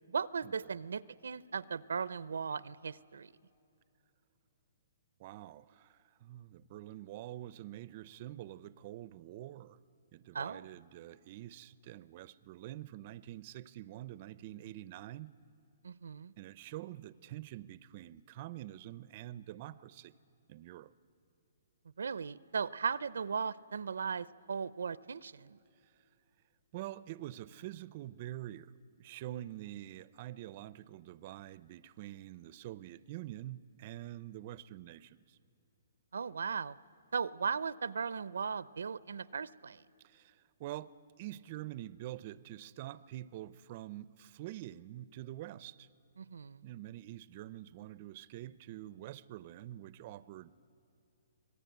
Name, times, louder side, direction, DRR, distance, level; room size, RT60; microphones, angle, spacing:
voice 1, 0.1-3.3 10.3-10.7 15.8-16.3 22.0-25.6 36.1-36.8 37.1-39.8 46.2-46.7, right 6 dB, 85° right, 0.5 m, -37 dB
voice 2, 5.2-9.8 10.1-15.3 16.4-20.1 20.5-20.9 26.7-35.4 40.0-45.9 46.6-50.5, right 14 dB, 35° right, 0.5 m, -46 dB
25.5 x 18.5 x 9.3 m
hypercardioid pair, 160°, 0 cm